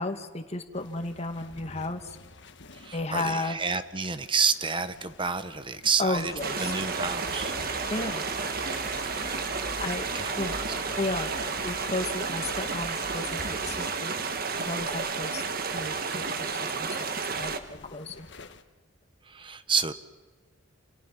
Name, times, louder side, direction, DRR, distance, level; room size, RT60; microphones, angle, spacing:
voice 1, 0.0-2.2 2.9-3.6 6.0-6.7 7.9-8.3 9.8-10.1 10.4-10.5 11.0-11.3 11.6-14.2 14.6-15.4 15.7-18.3, left 2 dB, 30° left, 6 dB, 2.1 m, -33 dB
sound 1, 0.7-18.6, left 3 dB, 60° left, 1.5 m, -51 dB
voice 2, 2.7-6.3 6.6-7.5 9.2-9.4 10.1-10.8 19.2-19.9, right 5 dB, 25° right, 11 dB, 1.1 m, -29 dB
sound 2, 6.1-13.9, left 2 dB, 15° left, 0.9 m, -43 dB
sound 3, 6.4-17.6, right 4 dB, 45° right, 1.5 m, -31 dB
29.0 x 28.5 x 5.9 m, 1.3 s
head